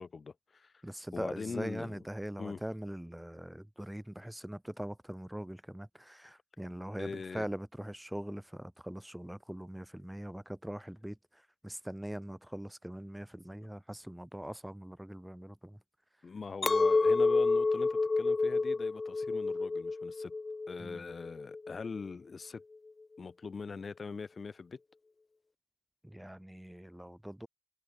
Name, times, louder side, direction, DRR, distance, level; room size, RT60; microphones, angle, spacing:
voice 1, 0.0-0.7 1.1-2.0 2.4-2.6 7.0-7.5 16.2-20.3 20.7-22.6 23.2-24.8, left 5 dB, 60° left, 2.3 m, -42 dB
voice 2, 0.8-15.8 20.8-21.0 26.0-27.5, equal, 5° right, 1.4 m, -42 dB
Chink clink, 16.6-22.0, left 3 dB, 45° left, 0.7 m, -29 dB
cardioid pair, 55°, 0 cm